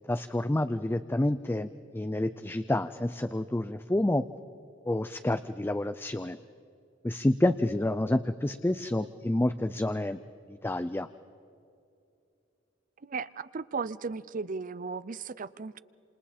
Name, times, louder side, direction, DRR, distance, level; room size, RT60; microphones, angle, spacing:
voice 1, 0.1-4.2 4.9-6.4 7.0-10.2 10.5-11.1, left 1 dB, 10° left, 10 dB, 0.4 m, -28 dB
voice 2, 13.0-15.8, right 4 dB, 45° right, 17 dB, 0.5 m, -36 dB
28.0 x 27.5 x 4.3 m, 2.6 s
head